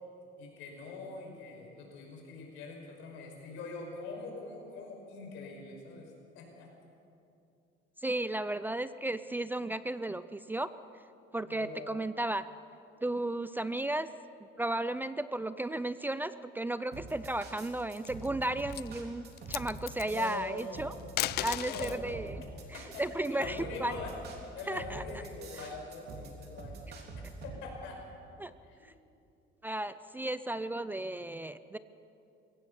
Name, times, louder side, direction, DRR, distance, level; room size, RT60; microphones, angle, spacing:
voice 1, 0.4-6.7 11.4-12.0 20.0-21.0 21.6-22.2 22.7-24.1 24.5-26.8 27.4-28.0 28.6-28.8, left 3 dB, 85° left, 1 dB, 5.6 m, -43 dB
voice 2, 8.0-10.7 11.3-12.5 13.0-14.1 14.6-20.9 21.4-22.4 22.7-23.9 24.7-25.0 28.4-28.5 29.6-31.8, right 1 dB, 10° right, 14 dB, 0.4 m, -34 dB
sound 1, 16.9-27.6, right 3 dB, 55° right, 3.3 m, -45 dB
sound 2, 17.8-18.3 18.7-18.9 19.3-20.1 21.0-22.0 23.5-24.7, left 16 dB, 55° left, 0.4 m, -36 dB
22.0 x 17.0 x 7.1 m, 2.6 s
cardioid pair, 145°, 20 cm